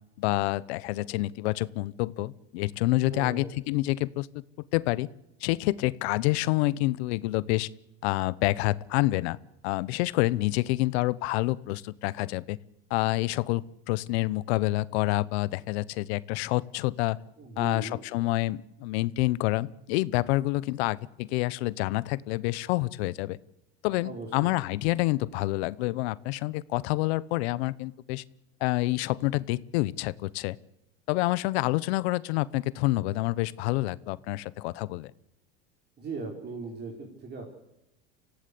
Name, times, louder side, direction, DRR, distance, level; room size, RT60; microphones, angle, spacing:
voice 1, 0.2-4.3 4.7-5.1 5.4-7.7 8.0-9.4 9.6-12.6 12.9-17.2 17.6-23.4 23.8-28.2 28.6-30.6 31.1-35.1, left 19 dB, 75° left, 19 dB, 1.0 m, -28 dB
voice 2, 3.1-3.5 17.4-18.0 24.0-24.5 36.0-37.5, right 4 dB, 30° right, 1 dB, 4.7 m, -38 dB
24.5 x 16.5 x 8.5 m, 0.88 s
supercardioid pair, 125°, 32 cm